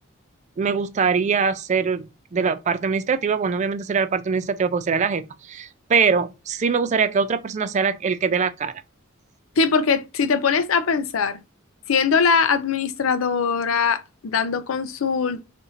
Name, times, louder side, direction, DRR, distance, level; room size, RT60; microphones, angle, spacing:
voice 1, 0.6-8.7, right 5 dB, 35° right, 0.3 m, -23 dB
voice 2, 9.6-11.4 11.9-15.4, left 5 dB, 70° left, 0.5 m, -21 dB
2.7 x 2.5 x 4.2 m
head